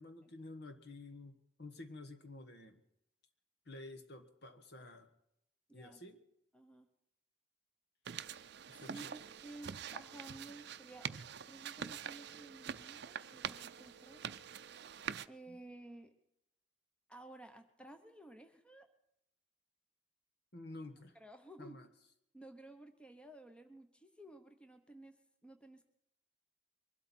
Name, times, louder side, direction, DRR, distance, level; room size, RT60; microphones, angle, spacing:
voice 1, 0.0-2.8 3.6-5.1 5.7-6.2 8.7-9.1 15.5-15.6 20.5-21.2 21.6-21.9, left 2 dB, 60° left, 8 dB, 1.5 m, -51 dB
voice 2, 5.7-6.0 6.5-6.9 8.7-11.2 11.5-14.2 15.3-16.1 17.1-18.9 21.2-21.8 22.3-25.1 25.4-25.9, right 1 dB, 5° left, 7 dB, 1.0 m, -54 dB
sound 1, 8.1-15.3, right 8 dB, 60° right, 0.5 m, -45 dB
23.0 x 12.5 x 4.4 m, 0.79 s
head